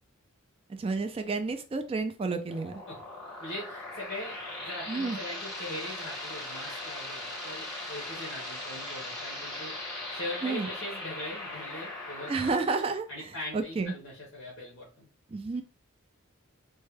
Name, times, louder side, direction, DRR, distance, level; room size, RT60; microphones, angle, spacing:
voice 1, 0.8-2.8 4.9-5.2 10.4-10.7 12.3-13.1 13.5-13.9 15.3-15.6, right 4 dB, 25° right, 7 dB, 0.3 m, -30 dB
sound 1, 2.5-12.5, left 1 dB, 20° left, 1.7 m, -39 dB
voice 2, 3.4-9.7 10.1-12.6 13.1-15.1, left 1 dB, 50° left, -4 dB, 1.5 m, -41 dB
4.3 x 2.1 x 3.2 m, 0.36 s
head